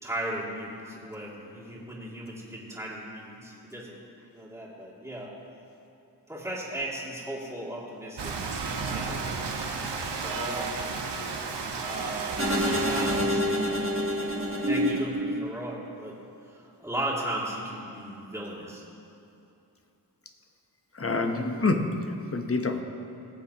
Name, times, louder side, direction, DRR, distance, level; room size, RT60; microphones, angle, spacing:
voice 1, 0.0-4.0 4.3-5.3 6.3-8.4 8.6-9.2 9.7-10.8 11.9-13.5 14.2-16.2 16.5-18.8, right 1 dB, 5° right, -8 dB, 2.5 m, -37 dB
Rain, 8.2-13.3, right 4 dB, 80° right, 1.0 m, -33 dB
sound 1, 12.4-15.7, equal, 30° right, 1.3 m, -27 dB
voice 2, 20.9-22.0 22.3-22.8, left 3 dB, 35° left, 5 dB, 0.9 m, -26 dB
20.0 x 7.1 x 2.9 m, 2.8 s
cardioid pair, 50°, 41 cm